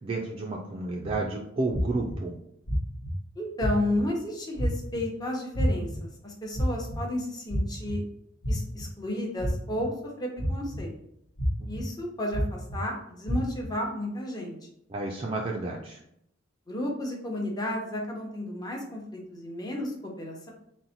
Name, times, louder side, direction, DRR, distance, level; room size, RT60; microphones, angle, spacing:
voice 1, 0.0-2.4 14.9-16.0, right 2 dB, 25° right, 0 dB, 0.3 m, -31 dB
sound 1, 1.0-1.1 1.7-2.1 2.7-3.1 3.6-4.0 4.6-5.0 5.5-6.0 6.5-7.0 7.5-7.9 8.4-8.8 9.4-9.8 10.4-10.8 11.4-11.8 12.3-12.8 13.3-13.7, equal, 60° left, 0.9 m, -29 dB
voice 2, 3.4-8.0 8.5-10.9 11.7-14.6 16.7-20.5, left 1 dB, 20° left, -1 dB, 0.7 m, -32 dB
3.9 x 2.1 x 4.2 m, 0.74 s
head